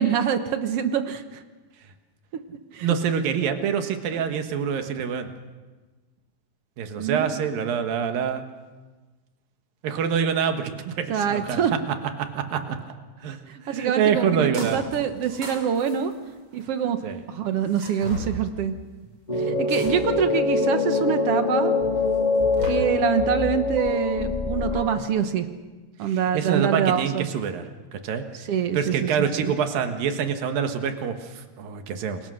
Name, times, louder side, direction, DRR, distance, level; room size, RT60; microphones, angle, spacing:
voice 1, 0.0-1.4 2.7-2.9 7.0-7.3 11.1-11.7 13.7-16.1 16.5-17.0 17.3-18.7 19.5-21.8 22.7-25.5 26.0-27.3 28.5-29.1 29.4-29.5, right 8 dB, 65° right, 8 dB, 1.5 m, -25 dB
voice 2, 2.8-5.3 6.8-8.4 9.8-12.9 13.2-14.8 17.0-17.2 26.0-28.2 28.7-32.2, right 7 dB, 85° right, 7 dB, 3.3 m, -26 dB
sound 1, 14.5-15.0 15.2-16.8 17.6-18.3 19.7-20.2 20.9-21.0 22.1-22.7, right 1 dB, 40° right, 7.2 m, -36 dB
sound 2, 19.3-25.0, left 3 dB, 15° left, 1.5 m, -24 dB
28.5 x 22.0 x 6.5 m, 1.3 s
omnidirectional pair, 3.9 m